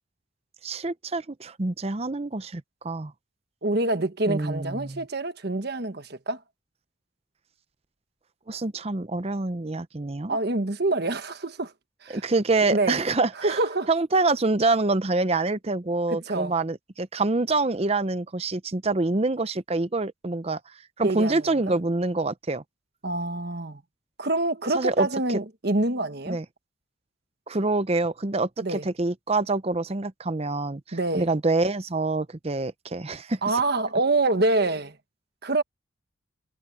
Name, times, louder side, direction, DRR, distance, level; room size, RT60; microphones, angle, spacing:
voice 1, 0.6-3.1 4.3-5.0 8.5-10.4 12.1-13.6 13.9-20.6 21.0-22.6 24.7-25.1 26.3-26.4 27.5-33.6, right 3 dB, 30° right, 0.6 m, -26 dB
voice 2, 3.6-6.4 10.3-11.7 12.0-12.2 12.7-13.0 13.4-13.9 16.1-16.5 21.0-21.7 23.0-23.8 24.2-26.4 28.6-28.9 30.9-31.3 33.4-35.0 35.4-35.6, right 2 dB, 50° right, 1.3 m, -26 dB
head